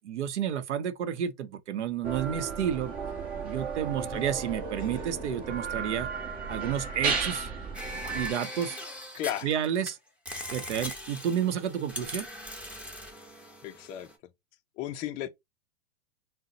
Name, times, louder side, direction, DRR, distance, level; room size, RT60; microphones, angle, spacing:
voice 1, 0.0-2.9 3.4-6.1 6.5-7.5 8.1-8.8 9.4-10.0 10.5-12.3, right 9 dB, 80° right, 0.7 m, -30 dB
sound 1, 2.0-8.3, right 5 dB, 25° right, 1.1 m, -34 dB
voice 2, 4.0-4.3 9.1-9.5 10.3-10.5 13.6-14.1 14.8-15.3, left 12 dB, 25° left, 0.4 m, -35 dB
sound 2, 7.7-9.9 10.3-14.1, left 1 dB, 5° right, 1.0 m, -40 dB
3.7 x 2.1 x 3.9 m
hypercardioid pair, 125°, 34 cm